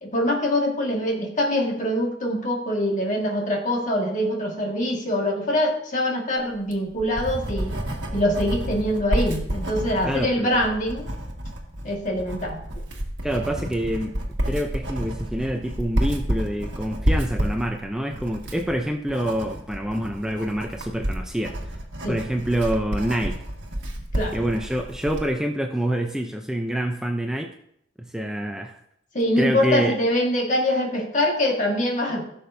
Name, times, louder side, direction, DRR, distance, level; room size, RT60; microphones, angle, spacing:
voice 1, 0.0-7.8 8.1-11.1 11.8-12.6 22.0-22.2 24.1-24.4 29.1-32.2, left 1 dB, 40° left, 0 dB, 1.8 m, -24 dB
Writing, 6.5-25.3, equal, 65° right, 1.7 m, -30 dB
voice 2, 10.1-10.5 13.2-14.2 14.5-21.7 22.1-23.4 24.3-27.5 28.0-28.8 29.4-30.0, right 1 dB, 5° right, 3 dB, 0.5 m, -26 dB
15.5 x 6.8 x 2.7 m, 0.74 s
head